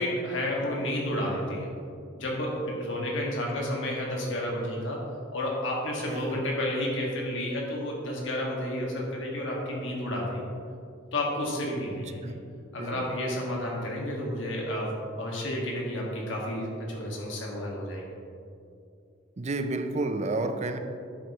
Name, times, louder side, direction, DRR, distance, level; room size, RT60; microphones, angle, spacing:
voice 1, 0.0-1.7 2.2-5.0 5.3-10.4 11.1-12.3 12.7-18.1, left 1 dB, 65° left, -2 dB, 1.8 m, -31 dB
voice 2, 6.0-6.5 11.9-12.4 12.8-13.2 19.4-20.8, right 2 dB, 35° right, 7 dB, 0.5 m, -32 dB
9.7 x 7.9 x 3.0 m, 2.5 s
head